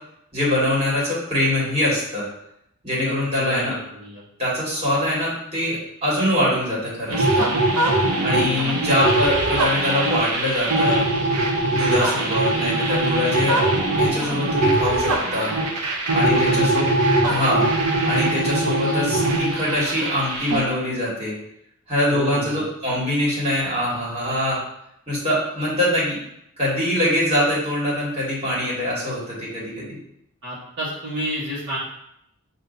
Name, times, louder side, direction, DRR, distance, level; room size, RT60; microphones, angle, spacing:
voice 1, 0.3-2.3 2.8-3.7 4.4-7.4 8.2-11.0 11.7-13.6 14.0-15.5 16.1-16.8 17.3-17.6 18.1-21.3 21.9-24.6 25.1-26.2 26.6-30.0, left 1 dB, 25° right, -6 dB, 1.7 m, -23 dB
voice 2, 3.0-4.2 8.1-8.8 16.1-16.7 22.1-22.6 30.4-31.8, equal, 50° right, -9 dB, 1.2 m, -31 dB
sound 1, 7.1-20.6, right 2 dB, 90° right, 0.8 m, -21 dB
7.2 x 2.7 x 2.7 m, 0.79 s
head